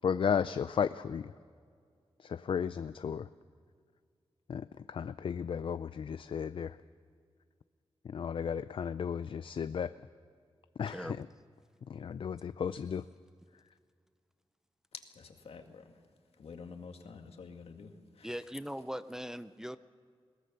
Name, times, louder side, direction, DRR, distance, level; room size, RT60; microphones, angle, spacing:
voice 1, 0.0-1.3 2.2-3.3 4.5-6.8 8.0-9.9 10.8-11.2 11.9-13.0, left 7 dB, 60° left, 13 dB, 0.4 m, -34 dB
voice 2, 15.1-15.9 16.4-18.3, left 5 dB, 80° left, 5 dB, 2.0 m, -49 dB
voice 3, 18.2-19.8, equal, 5° right, 12 dB, 0.4 m, -40 dB
21.5 x 18.0 x 6.8 m, 2.1 s
wide cardioid pair, 170°, 10 cm